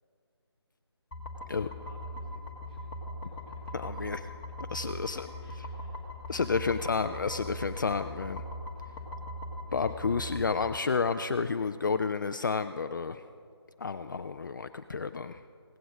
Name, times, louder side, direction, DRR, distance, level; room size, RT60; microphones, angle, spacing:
sound 1, 1.1-10.8, left 1 dB, 20° left, 1.4 m, -40 dB
voice 1, 1.5-2.9 3.2-4.8 5.4-7.8 8.7-9.1 9.3-10.8, equal, 5° left, -10 dB, 2.6 m, -57 dB
voice 2, 3.7-4.2 4.7-5.3 6.3-8.4 9.7-13.2 13.8-15.4, left 5 dB, 45° left, 10 dB, 0.4 m, -30 dB
17.0 x 11.5 x 4.9 m, 2.4 s
figure-of-eight pair, 160°, 14 cm